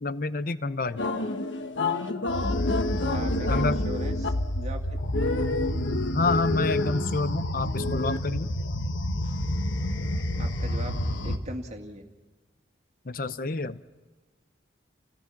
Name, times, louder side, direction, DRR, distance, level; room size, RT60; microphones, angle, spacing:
voice 1, 0.0-1.1 3.5-3.8 6.1-8.5 13.0-13.8, left 3 dB, 50° left, 14 dB, 0.7 m, -28 dB
sound 1, 1.0-11.4, left 1 dB, 90° left, 1.3 m, -28 dB
voice 2, 3.1-4.8 10.4-10.9 11.2-12.0, right 1 dB, 35° right, 3 dB, 2.2 m, -39 dB
29.5 x 18.0 x 5.9 m, 1.3 s
head